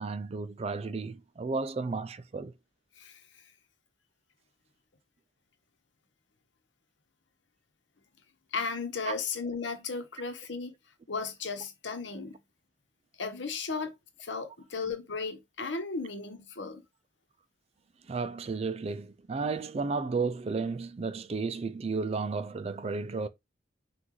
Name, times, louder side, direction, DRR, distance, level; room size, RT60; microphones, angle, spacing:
voice 1, 0.0-2.5 9.1-9.2 18.1-23.3, right 4 dB, 35° right, 0.3 m, -33 dB
voice 2, 8.5-10.7 11.1-12.4 13.2-13.9 14.2-16.8, left 4 dB, 75° left, 1.0 m, -35 dB
5.9 x 2.5 x 3.1 m
head